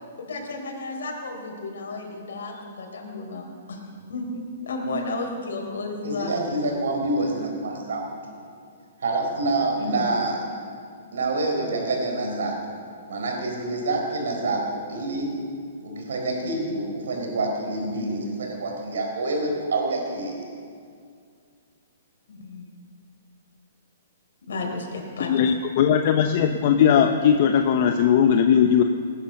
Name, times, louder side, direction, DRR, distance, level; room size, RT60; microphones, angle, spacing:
voice 1, 0.2-3.8 4.1-6.3 9.7-10.0 22.3-22.7 24.5-25.3, left 3 dB, 80° left, 1 dB, 4.0 m, -33 dB
voice 2, 6.0-8.5 9.0-10.4 11.1-12.8 13.1-15.3 15.8-20.5, right 2 dB, 80° right, 2 dB, 4.1 m, -27 dB
voice 3, 25.2-28.8, left 8 dB, 50° left, 6 dB, 0.9 m, -19 dB
19.5 x 10.0 x 6.6 m, 2.3 s
hypercardioid pair, 150°, 0 cm